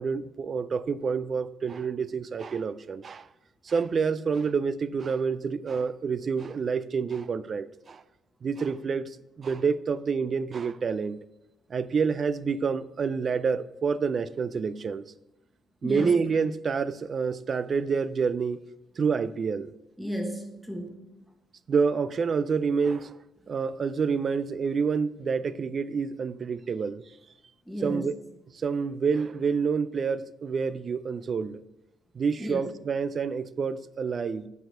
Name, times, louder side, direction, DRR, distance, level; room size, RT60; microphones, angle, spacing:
voice 1, 0.0-3.3 3.6-8.0 8.4-11.2 11.7-15.0 15.8-18.6 19.0-19.7 21.7-23.2 23.5-27.0 27.8-28.2 28.5-31.6 32.1-34.5, right 5 dB, 45° right, 0.4 m, -28 dB
voice 2, 15.8-16.2 20.0-21.0 27.7-28.1 32.4-32.7, equal, ahead, 1.2 m, -33 dB
7.9 x 4.8 x 5.3 m
cardioid pair, 90°, 0 cm